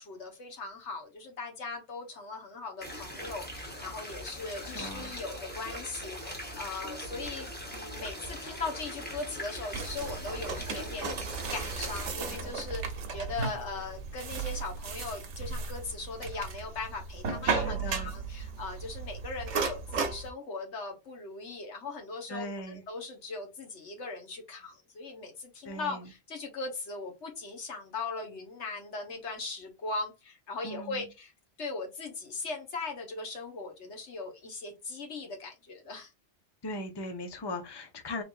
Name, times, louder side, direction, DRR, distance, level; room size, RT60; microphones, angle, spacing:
voice 1, 0.0-11.1 11.5-31.3 31.6-36.1, left 3 dB, 90° left, 1.5 m, -39 dB
sound 1, 2.8-12.1, equal, 10° left, 1.2 m, -41 dB
voice 2, 4.7-5.1 17.4-18.1 22.3-22.8 25.6-26.1 30.6-31.1 36.6-38.2, left 1 dB, 25° left, 0.7 m, -39 dB
sound 2, 9.7-20.3, right 5 dB, 90° right, 1.1 m, -35 dB
3.8 x 3.4 x 2.5 m
omnidirectional pair, 1.2 m